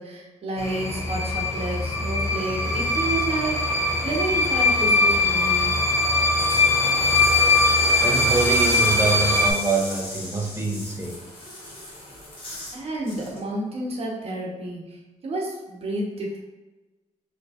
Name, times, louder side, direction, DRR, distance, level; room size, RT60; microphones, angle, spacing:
voice 1, 0.0-5.8 12.7-16.4, right 2 dB, 50° right, -2 dB, 1.0 m, -30 dB
sound 1, 0.6-9.5, left 2 dB, 25° left, 0.6 m, -21 dB
sound 2, 6.2-12.8 13.1-13.4, left 1 dB, 45° left, 1.3 m, -36 dB
voice 2, 8.0-11.2, right 3 dB, 20° right, 1 dB, 0.6 m, -25 dB
5.3 x 3.1 x 2.4 m, 1.1 s
wide cardioid pair, 145°, 13 cm